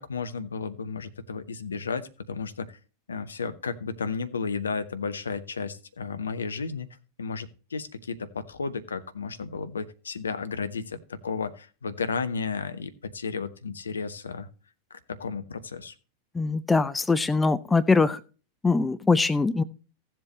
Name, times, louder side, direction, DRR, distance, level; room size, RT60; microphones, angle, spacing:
voice 1, 0.0-2.8 3.1-6.9 7.2-14.5 14.9-15.9, left 5 dB, 70° left, 11 dB, 0.9 m, -33 dB
voice 2, 16.3-18.2 18.6-19.6, left 4 dB, 10° left, 14 dB, 0.5 m, -22 dB
15.5 x 7.5 x 3.1 m, 0.36 s
figure-of-eight pair, 90°, 0 cm